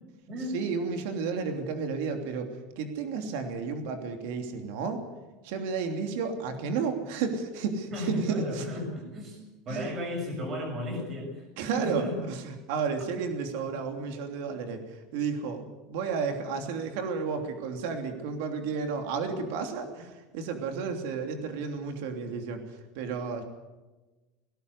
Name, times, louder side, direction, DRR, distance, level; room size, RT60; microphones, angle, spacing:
voice 1, 0.5-5.0 5.4-8.7 9.7-9.9 11.6-23.4, right 5 dB, 60° right, 5 dB, 3.1 m, -32 dB
voice 2, 7.9-9.4 9.7-11.5 11.7-12.2 13.6-13.7, left 1 dB, 25° right, 2 dB, 6.2 m, -34 dB
20.5 x 17.5 x 8.2 m, 1.2 s
cardioid pair, 180°, 0 cm